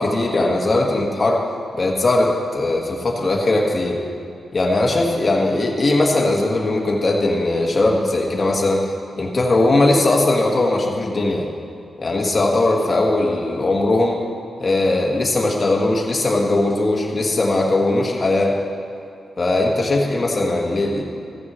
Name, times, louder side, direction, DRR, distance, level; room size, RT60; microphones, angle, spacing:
voice 1, 0.0-1.4 1.8-4.0 4.5-8.8 9.2-11.5 12.0-14.2 14.6-18.6 19.4-21.0, left 2 dB, 30° left, -2 dB, 1.5 m, -19 dB
14.0 x 7.3 x 6.2 m, 2.6 s
wide cardioid pair, 170°, 0 cm